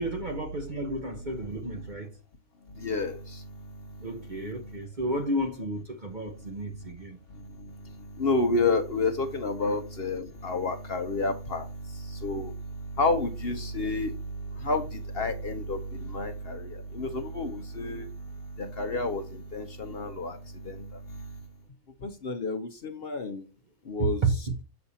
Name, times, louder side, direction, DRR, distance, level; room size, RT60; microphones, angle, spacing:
voice 1, 0.0-2.1 4.0-7.2 24.0-24.3, right 2 dB, 40° right, 0.8 m, -31 dB
voice 2, 2.8-3.6 7.3-18.1 18.6-20.4 20.6-21.2 22.0-23.4 23.9-24.2, left 3 dB, 50° left, 0.9 m, -30 dB
6.9 x 6.5 x 2.7 m
omnidirectional pair, 1.5 m